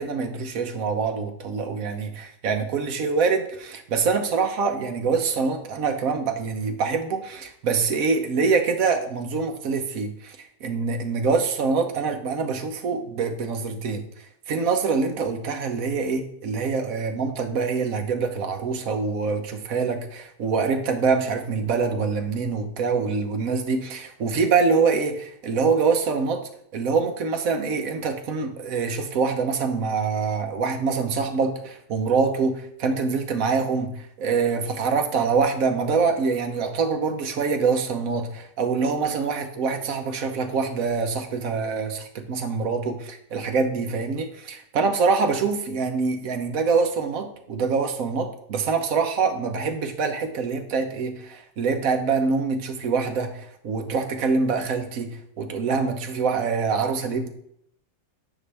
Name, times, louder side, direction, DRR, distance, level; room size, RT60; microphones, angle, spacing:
voice 1, 0.0-14.0 14.5-26.4 26.7-57.3, right 5 dB, 60° right, 5 dB, 1.2 m, -25 dB
9.7 x 5.4 x 3.4 m, 0.72 s
omnidirectional pair, 1.9 m